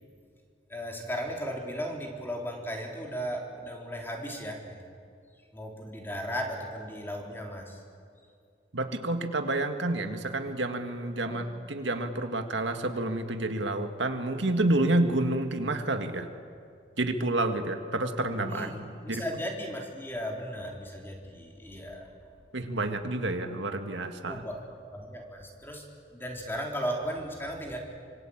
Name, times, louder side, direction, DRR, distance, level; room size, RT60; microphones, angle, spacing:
voice 1, 0.7-4.8 5.5-7.8 11.2-11.5 18.5-22.1 24.2-24.6 24.9-25.8 26.1-27.8, equal, 10° left, 0 dB, 3.8 m, -36 dB
voice 2, 8.7-16.3 17.0-18.7 19.1-19.3 22.5-24.4, right 2 dB, 80° right, 6 dB, 1.9 m, -29 dB
26.0 x 25.5 x 8.8 m, 2.3 s
head